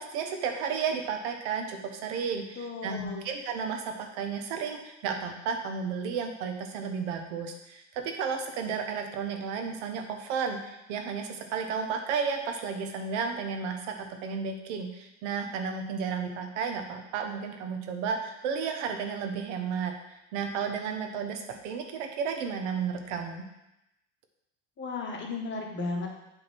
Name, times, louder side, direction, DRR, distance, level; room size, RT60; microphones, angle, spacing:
voice 1, 0.0-19.9 20.3-23.5, right 6 dB, 80° right, 4 dB, 1.2 m, -33 dB
voice 2, 2.5-3.3 24.8-26.1, left 3 dB, 30° left, 0 dB, 1.7 m, -35 dB
6.9 x 3.9 x 6.0 m, 0.89 s
supercardioid pair, 100°, 35 cm